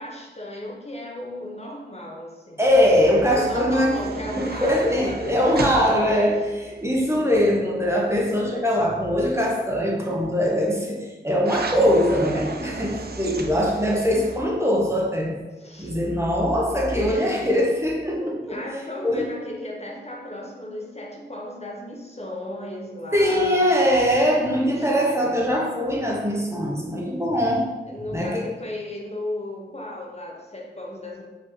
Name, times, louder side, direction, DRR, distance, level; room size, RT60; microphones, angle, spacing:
voice 1, 0.0-2.6 3.3-6.0 15.6-16.0 16.9-17.6 18.4-23.6 24.8-24.9 27.9-31.2, left 1 dB, 35° left, -1 dB, 0.8 m, -35 dB
voice 2, 2.6-4.0 4.3-15.4 15.8-18.6 19.0-19.2 23.1-27.7 28.1-28.5, equal, 15° right, -2 dB, 0.9 m, -22 dB
sound 1, 3.0-7.5 11.4-14.4, right 2 dB, 55° right, 0.5 m, -35 dB
4.8 x 3.5 x 3.1 m, 1.2 s
wide cardioid pair, 55°, 20 cm